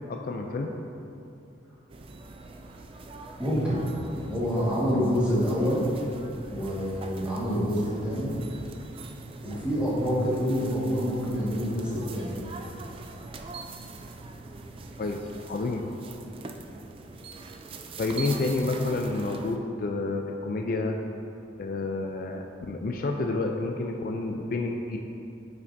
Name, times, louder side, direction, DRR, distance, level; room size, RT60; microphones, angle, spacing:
voice 1, 0.1-0.7 15.0-15.2 15.5-15.9 18.0-21.0 21.6-25.0, left 3 dB, 50° left, 2 dB, 0.3 m, -29 dB
sound 1, 1.9-19.6, right 3 dB, 30° right, 0.3 m, -43 dB
voice 2, 3.4-3.8 4.3-5.8 6.5-8.3 9.4-12.3, equal, 5° right, -9 dB, 1.6 m, -27 dB
9.4 x 5.8 x 2.6 m, 2.7 s
head